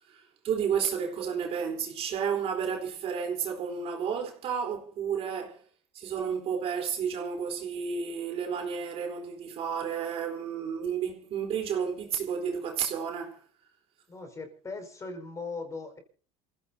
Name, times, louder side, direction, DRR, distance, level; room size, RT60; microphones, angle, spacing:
voice 1, 0.1-5.6 5.9-13.4, right 7 dB, 50° right, 3.9 m, -31 dB
voice 2, 14.1-16.0, left 3 dB, 25° left, 4.9 m, -39 dB
27.5 x 16.0 x 2.8 m
supercardioid pair, 105°, 13 cm